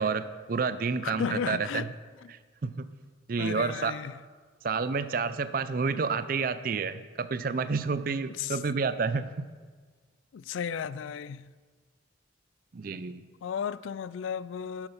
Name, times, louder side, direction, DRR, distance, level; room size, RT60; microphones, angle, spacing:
voice 1, 0.0-1.9 2.3-2.9 3.3-4.0 4.6-9.5 12.7-13.2, right 4 dB, 50° right, 0.4 m, -30 dB
voice 2, 1.0-1.9 3.4-4.1 8.4-8.6 10.3-11.4 13.4-14.9, left 7 dB, 90° left, 0.3 m, -34 dB
12.0 x 6.0 x 5.6 m
head